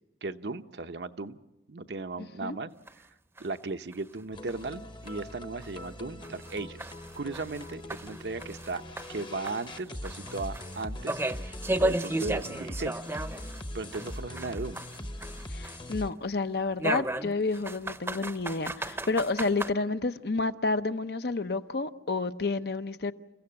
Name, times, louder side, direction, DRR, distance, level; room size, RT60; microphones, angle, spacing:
voice 1, 0.2-1.4 1.7-3.1 3.4-6.9 7.2-8.8 9.1-11.2 11.7-13.0 13.7-14.8, right 3 dB, 75° right, 0.9 m, -36 dB
sound 1, 2.9-3.0 3.4-3.5 3.9-4.0 4.5-4.6 5.1-5.2 5.6-5.7 6.2-8.7 9.0-13.6 13.9-16.0 16.8-19.7, right 1 dB, 15° right, 0.7 m, -34 dB
sound 2, 4.3-16.1, left 1 dB, 25° left, 1.0 m, -41 dB
voice 2, 15.5-23.1, left 3 dB, 65° left, 0.8 m, -30 dB
29.5 x 15.5 x 8.7 m
head